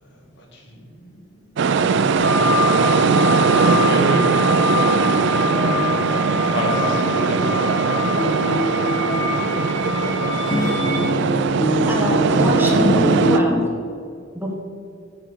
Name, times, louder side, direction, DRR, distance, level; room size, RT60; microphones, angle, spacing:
voice 1, 0.0-5.4 6.5-8.8 9.2-11.1, equal, 60° left, 0 dB, 1.7 m, -32 dB
sound 1, 1.6-13.4, right 5 dB, 60° right, 0.4 m, -20 dB
sound 2, 2.2-11.0, left 6 dB, 45° right, 2.3 m, -26 dB
sound 3, 3.7-13.7, equal, 15° left, 0.4 m, -26 dB
voice 2, 11.9-13.6 14.3-14.6, equal, 10° right, -1 dB, 1.4 m, -24 dB
8.5 x 4.5 x 7.0 m, 2.2 s
head